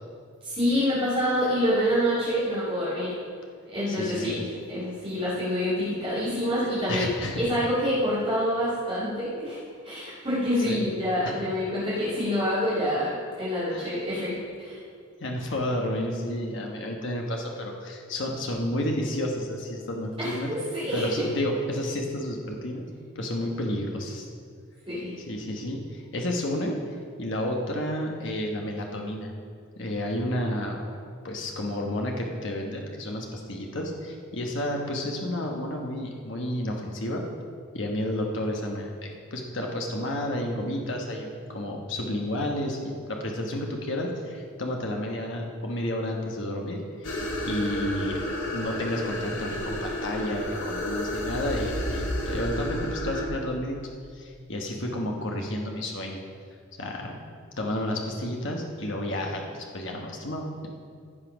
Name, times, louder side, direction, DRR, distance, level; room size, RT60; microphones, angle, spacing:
voice 1, 0.4-3.1 3.7-9.6 9.8-14.8 20.2-21.2 24.9-25.1, equal, 25° right, -11 dB, 2.8 m, -27 dB
voice 2, 3.9-4.3 6.9-7.4 10.7-10.8 11.2-11.4 13.7-14.0 15.2-20.5 20.9-22.8 23.1-24.3 25.3-26.8 27.2-29.3 29.8-31.0 31.2-37.2 37.7-47.1 47.4-48.2 48.5-53.8 54.1-56.2 56.8-57.2 57.6-60.7, left 1 dB, 60° left, 1 dB, 1.2 m, -31 dB
sound 1, 47.0-53.3, equal, 80° left, 1.8 m, -31 dB
16.5 x 5.7 x 5.1 m, 2.2 s
head